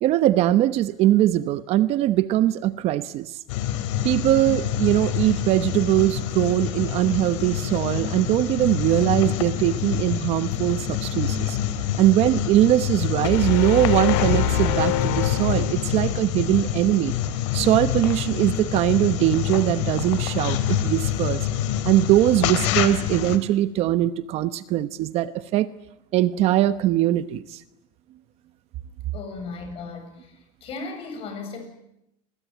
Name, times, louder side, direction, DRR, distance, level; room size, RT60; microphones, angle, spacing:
voice 1, 0.0-3.4 4.0-11.6 12.0-17.1 17.5-21.5 21.8-25.7 26.1-27.6, right 14 dB, 45° right, 13 dB, 1.0 m, -21 dB
sound 1, 3.5-23.4, left 10 dB, 85° left, 3.1 m, -27 dB
sound 2, 13.2-16.2, left 9 dB, 65° left, 3.6 m, -25 dB
voice 2, 29.1-30.4 30.6-31.6, left 4 dB, 40° left, 6 dB, 7.7 m, -36 dB
28.0 x 21.0 x 9.3 m, 0.84 s
cardioid pair, 160°, 15 cm